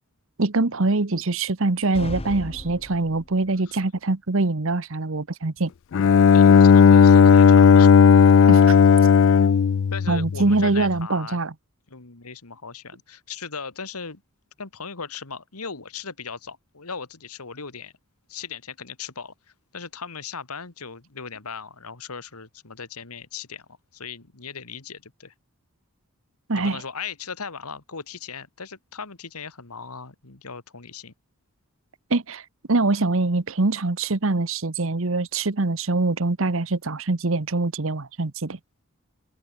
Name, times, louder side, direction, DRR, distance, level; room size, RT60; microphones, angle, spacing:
voice 1, 0.4-5.7 8.5-8.8 10.1-11.5 26.5-26.8 32.1-32.4 32.7-38.6, right 3 dB, 60° right, 1.1 m, -23 dB
sound 1, 1.9-3.6, left 1 dB, 25° left, 1.6 m, -36 dB
Bowed string instrument, 5.9-10.8, left 6 dB, 55° left, 0.3 m, -14 dB
voice 2, 6.3-7.9 9.9-11.4 11.9-14.2 14.6-17.9 18.3-19.3 19.7-23.7 23.9-25.3 26.5-31.1, left 5 dB, 85° left, 2.1 m, -37 dB
open air
head